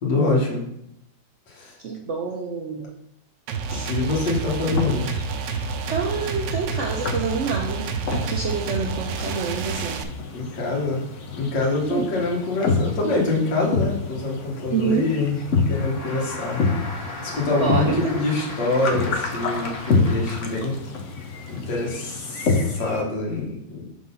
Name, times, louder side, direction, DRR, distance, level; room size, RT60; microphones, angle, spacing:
voice 1, 0.0-0.6 1.5-1.8 3.8-5.1 10.3-11.0 11.3-15.4 15.7-16.6 17.2-20.8 21.2-23.9, left 3 dB, 80° left, -3 dB, 2.0 m, -25 dB
voice 2, 1.8-2.9 3.7-3.9 5.9-10.0 11.9-12.1 14.7-15.1 17.5-18.2, right 5 dB, 70° right, 0 dB, 0.7 m, -27 dB
sound 1, 3.5-10.0, right 5 dB, 90° right, 1.3 m, -29 dB
sound 2, 3.7-23.0, left 4 dB, 55° left, 1.0 m, -28 dB
sound 3, 15.7-20.7, left 2 dB, 25° left, 1.3 m, -37 dB
4.7 x 3.8 x 5.5 m, 0.79 s
omnidirectional pair, 1.9 m